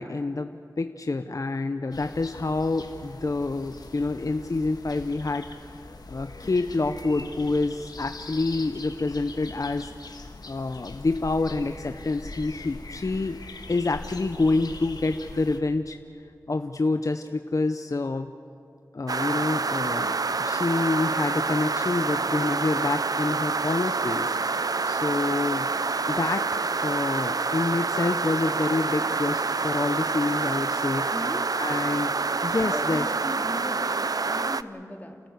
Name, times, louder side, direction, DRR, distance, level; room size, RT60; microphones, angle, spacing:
voice 1, 0.0-9.9 10.2-13.4 13.7-16.0 16.5-18.3 18.9-24.4 24.8-25.7 26.1-31.1 31.6-32.1 32.4-33.0, left 3 dB, 55° left, 8 dB, 0.7 m, -27 dB
sound 1, 1.9-15.6, left 3 dB, 90° left, 1.5 m, -42 dB
sound 2, 19.1-34.6, right 4 dB, 70° right, 0.6 m, -27 dB
voice 2, 31.1-31.5 32.5-35.2, left 1 dB, 25° left, 3 dB, 2.8 m, -38 dB
29.5 x 14.0 x 8.1 m, 2.7 s
wide cardioid pair, 60°, 7 cm